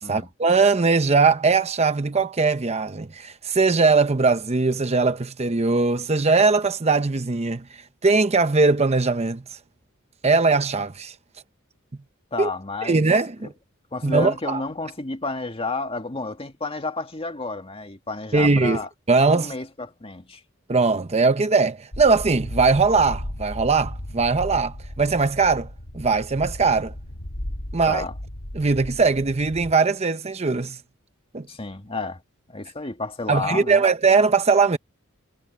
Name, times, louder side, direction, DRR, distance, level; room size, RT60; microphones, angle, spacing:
voice 1, 0.1-7.6 8.0-9.4 10.2-11.1 12.4-12.5 12.8-13.5 14.0-14.6 18.3-18.8 19.1-19.5 20.7-25.7 25.9-26.9 27.7-28.0 28.5-30.8 31.3-31.5 33.3-34.8, right 4 dB, 30° right, 0.7 m, -20 dB
voice 2, 12.3-13.0 13.4-13.5 13.9-18.9 19.3-20.4 27.9-28.1 31.5-32.2 32.5-33.8, left 3 dB, 25° left, 1.9 m, -31 dB
sound 1, 21.9-29.7, left 1 dB, 75° left, 2.8 m, -35 dB
head